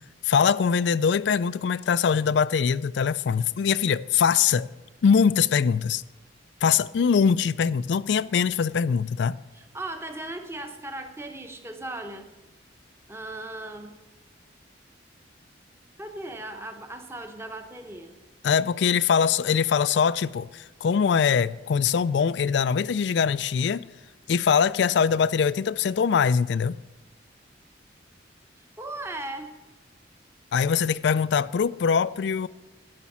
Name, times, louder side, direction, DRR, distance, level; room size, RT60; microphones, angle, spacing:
voice 1, 0.2-4.7 5.0-6.0 6.6-9.4 18.4-23.8 24.3-26.8 30.5-32.5, left 6 dB, 65° left, 0.3 m, -22 dB
voice 2, 9.5-12.3 13.1-14.0 16.0-18.1 28.8-29.5, right 2 dB, 15° right, 0.9 m, -37 dB
12.5 x 5.8 x 7.3 m
head